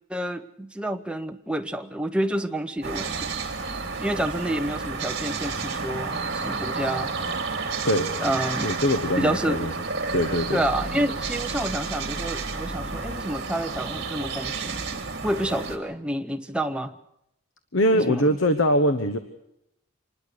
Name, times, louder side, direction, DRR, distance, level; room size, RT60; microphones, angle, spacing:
voice 1, 0.1-3.3 4.0-7.1 8.2-8.7 9.2-9.7 10.5-14.8 15.2-17.0 17.9-18.4, right 1 dB, 5° right, 6 dB, 0.8 m, -29 dB
sound 1, 2.8-15.8, right 4 dB, 50° right, 2.7 m, -31 dB
voice 2, 8.6-9.7 10.1-10.6 17.7-19.2, equal, 65° left, 9 dB, 1.1 m, -22 dB
25.5 x 20.0 x 6.6 m, 0.81 s
head